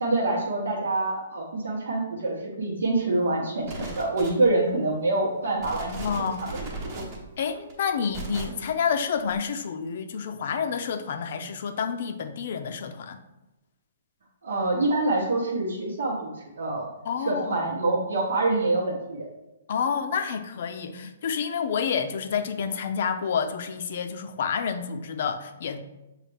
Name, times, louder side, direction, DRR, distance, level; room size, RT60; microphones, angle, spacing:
voice 1, 0.0-7.0 7.5-7.6 14.4-16.9 17.2-19.3 20.9-21.0, right 2 dB, 85° right, -4 dB, 1.0 m, -26 dB
sound 1, 3.6-4.7 5.2-5.3 5.6-8.7 9.3-9.4, right 2 dB, 25° right, 0.9 m, -37 dB
voice 2, 5.8-6.4 7.4-13.2 17.1-17.7 19.7-25.8, left 6 dB, 50° left, 8 dB, 0.4 m, -29 dB
6.3 x 2.4 x 3.4 m, 0.98 s
hypercardioid pair, 165°, 0 cm